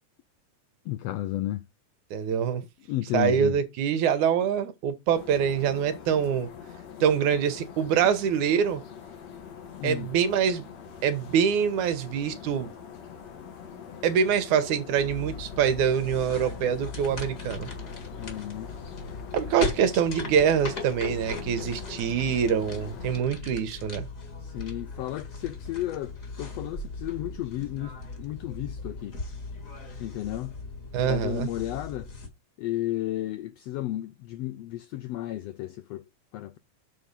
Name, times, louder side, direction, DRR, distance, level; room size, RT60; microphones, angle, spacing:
voice 1, 0.9-1.6 2.9-3.6 9.7-10.1 18.2-18.7 24.4-26.1 26.4-29.2 30.0-30.5 31.0-32.1 32.6-36.0 36.3-36.6, left 15 dB, 85° left, 1.4 m, -33 dB
voice 2, 2.1-2.6 3.1-6.5 7.0-8.8 9.8-10.7 11.0-12.7 14.0-17.7 19.3-24.1 30.9-31.5, right 8 dB, 80° right, 2.5 m, -25 dB
sound 1, 5.1-23.2, left 7 dB, 65° left, 2.8 m, -44 dB
sound 2, 15.0-32.3, left 3 dB, 30° left, 1.9 m, -38 dB
7.5 x 4.2 x 5.2 m
omnidirectional pair, 3.4 m